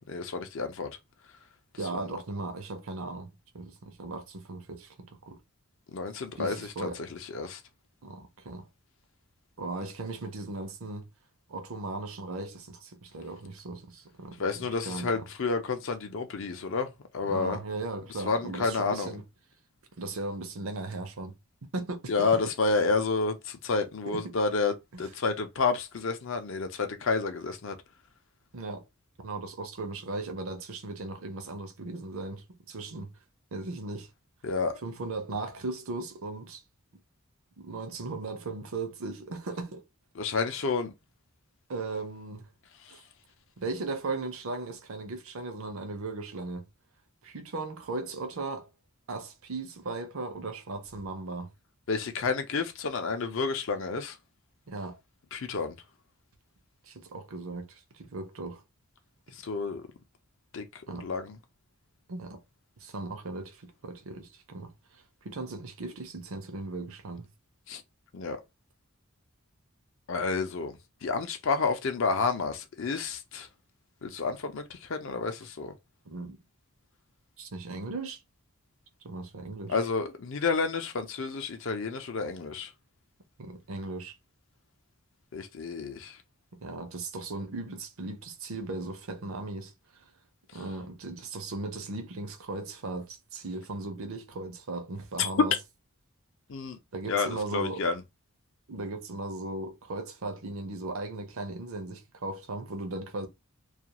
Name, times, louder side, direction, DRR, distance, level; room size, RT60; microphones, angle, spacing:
voice 1, 0.1-1.0 1.9-2.1 5.9-7.6 14.4-17.6 18.2-19.2 22.1-27.8 34.4-34.8 40.2-40.9 42.8-42.9 51.9-54.2 55.3-55.8 59.3-59.9 60.5-61.4 67.7-67.8 68.1-68.4 70.1-73.5 74.0-75.7 79.7-82.7 85.3-86.2 95.2-95.3 96.5-96.8 97.1-98.0, left 4 dB, 60° left, 0.5 m, -30 dB
voice 2, 1.8-5.4 6.4-7.0 8.0-8.7 9.6-11.1 11.5-15.2 17.2-19.2 20.0-21.3 21.7-22.3 24.1-24.3 28.5-28.8 29.2-33.1 33.5-34.1 34.8-36.6 37.6-39.8 41.7-42.5 42.9-43.0 43.6-46.7 47.2-48.7 49.1-51.5 54.7-55.0 56.8-58.6 60.9-61.1 62.1-62.4 62.8-67.3 76.0-76.4 77.4-78.2 79.0-79.8 83.4-84.1 86.6-90.1 90.5-95.5 96.9-97.9 98.7-103.3, right 3 dB, 70° right, 0.6 m, -37 dB
2.4 x 2.3 x 2.8 m
head